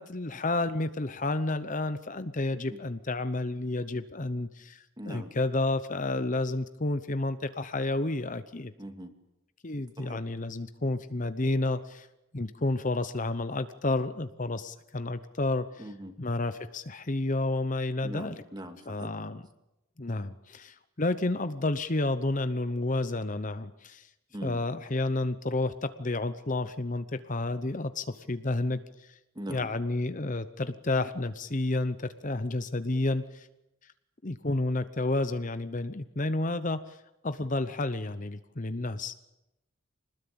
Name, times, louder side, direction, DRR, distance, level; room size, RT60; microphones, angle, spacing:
voice 1, 0.0-8.7 9.6-12.1 12.3-15.9 16.2-18.4 18.9-19.5 20.0-24.1 24.4-29.1 29.5-33.5 34.2-37.0 37.2-39.1, left 2 dB, 35° left, 11 dB, 0.9 m, -30 dB
voice 2, 5.0-5.3 8.8-9.1 10.0-10.2 15.8-16.1 18.0-19.1 24.3-24.6 29.4-29.7, equal, 20° right, 6 dB, 2.4 m, -41 dB
26.0 x 20.0 x 8.8 m, 0.92 s
head